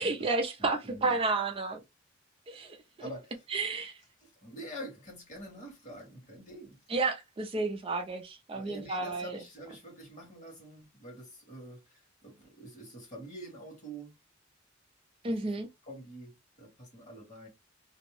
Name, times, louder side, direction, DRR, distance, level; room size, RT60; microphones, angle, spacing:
voice 1, 0.0-1.8 2.5-3.1 3.5-4.0 6.9-9.4 15.2-15.7, right 3 dB, 30° right, 0.4 m, -31 dB
voice 2, 0.6-1.2 3.0-3.4 4.2-6.8 8.5-14.2 15.2-15.6 15.8-17.5, right 1 dB, 40° left, 1.4 m, -46 dB
2.6 x 2.0 x 3.0 m
head